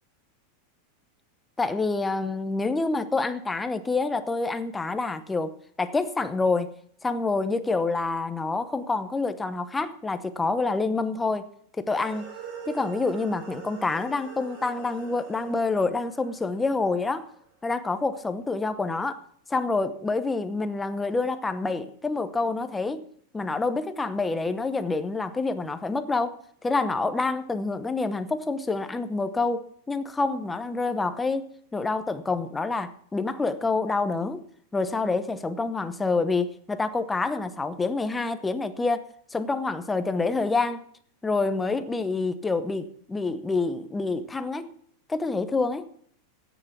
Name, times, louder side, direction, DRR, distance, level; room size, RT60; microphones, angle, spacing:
voice 1, 1.6-6.7 7.0-11.5 11.8-12.2 12.7-17.3 17.6-19.2 19.5-23.0 23.3-34.4 34.7-40.8 41.2-44.7 45.1-45.8, left 3 dB, 10° left, 10 dB, 0.8 m, -27 dB
sound 1, 11.9-17.3, right 7 dB, 50° right, 5.7 m, -43 dB
14.5 x 9.3 x 6.0 m, 0.62 s
supercardioid pair, 170°, 0 cm